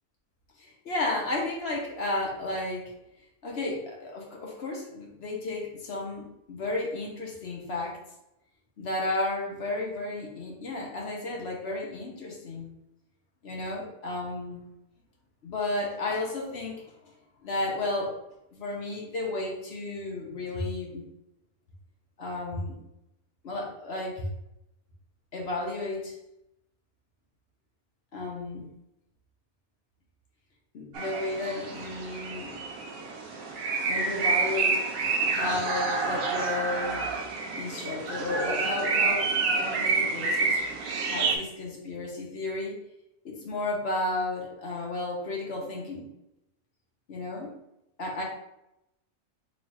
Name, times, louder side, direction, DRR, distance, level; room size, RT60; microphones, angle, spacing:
voice 1, 0.6-2.9 3.4-8.0 8.8-12.7 13.4-14.6 15.4-17.1 17.4-18.1 18.5-21.0 22.2-22.8 23.4-24.3 25.3-26.1 28.1-28.7 30.7-32.6 33.9-34.8 35.3-37.1 37.6-40.6 41.1-42.8 43.2-46.1 47.1-47.5 48.0-48.2, left 2 dB, 50° left, -1 dB, 0.9 m, -33 dB
sound 1, 30.9-41.4, right 4 dB, 75° right, 1.0 m, -28 dB
3.1 x 2.4 x 4.1 m, 0.84 s
omnidirectional pair, 1.6 m